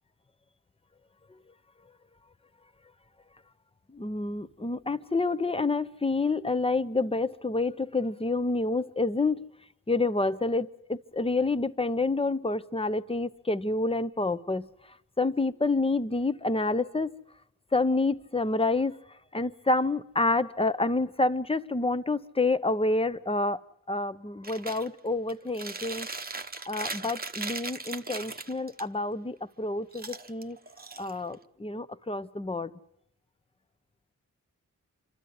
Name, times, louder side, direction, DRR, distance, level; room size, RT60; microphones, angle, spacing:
voice 1, 3.9-9.5 9.9-14.7 15.2-17.1 17.7-19.0 19.3-23.6 23.9-26.1 26.7-30.6 31.0-32.7, left 3 dB, 15° left, 0.8 m, -28 dB
Chewing mastication, 24.4-24.9 25.3-28.8 29.9-31.4, right 3 dB, 25° right, 1.0 m, -38 dB
26.0 x 13.0 x 9.5 m
cardioid pair, 55°, 33 cm